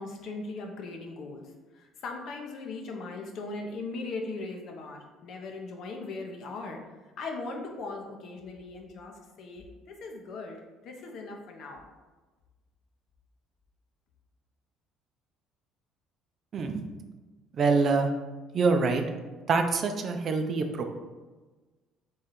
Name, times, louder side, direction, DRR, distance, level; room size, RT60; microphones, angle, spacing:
voice 1, 0.0-6.8 7.2-10.6 10.8-11.9, left 3 dB, 60° left, 2 dB, 0.8 m, -39 dB
voice 2, 16.5-16.8 17.6-18.1 18.5-19.0 19.5-20.8, right 4 dB, 50° right, 5 dB, 0.5 m, -25 dB
3.6 x 3.2 x 4.4 m, 1.3 s
hypercardioid pair, 60°, 0 cm